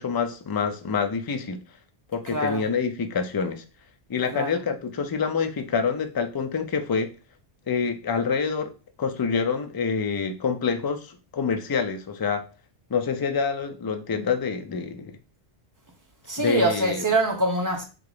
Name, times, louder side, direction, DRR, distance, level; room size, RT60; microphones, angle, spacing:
voice 1, 0.0-1.6 2.1-3.6 4.1-7.1 7.7-8.7 9.0-12.4 12.9-15.2 16.4-17.1, left 5 dB, 35° left, 0.3 m, -27 dB
voice 2, 2.3-2.6 4.3-4.6 16.3-17.8, right 1 dB, 20° right, 0.9 m, -24 dB
3.9 x 2.8 x 4.8 m
omnidirectional pair, 1.1 m